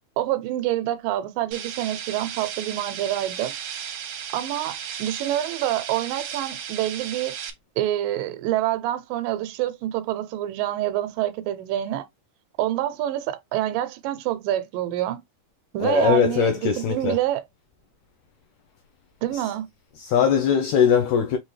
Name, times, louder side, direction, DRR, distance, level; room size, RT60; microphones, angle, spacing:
voice 1, 0.2-3.5 4.3-7.4 7.8-12.1 12.6-15.2 15.7-17.4 19.2-19.7, right 13 dB, 85° right, 2.3 m, -27 dB
sound 1, 1.5-7.5, right 8 dB, 70° right, 1.5 m, -35 dB
voice 2, 15.8-17.2 19.3-19.5 19.9-21.4, left 7 dB, 80° left, 1.6 m, -21 dB
5.8 x 2.7 x 3.2 m
omnidirectional pair, 3.8 m